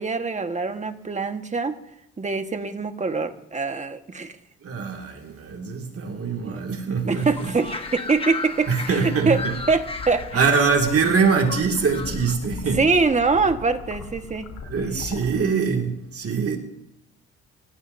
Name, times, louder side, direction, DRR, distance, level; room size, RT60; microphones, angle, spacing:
voice 1, 0.0-1.7 2.2-4.4 6.4-6.6 7.0-9.4 9.7-10.5 12.7-14.5, right 4 dB, 25° right, 7 dB, 1.4 m, -24 dB
voice 2, 4.6-7.5 8.7-9.5 10.3-12.8 14.6-16.6, right 5 dB, 50° right, 3 dB, 2.2 m, -23 dB
sound 1, 7.1-12.3, left 3 dB, 20° left, 1.4 m, -35 dB
sound 2, 9.3-15.4, left 5 dB, 75° left, 3.5 m, -39 dB
26.0 x 15.5 x 2.7 m, 0.88 s
cardioid pair, 90°, 30 cm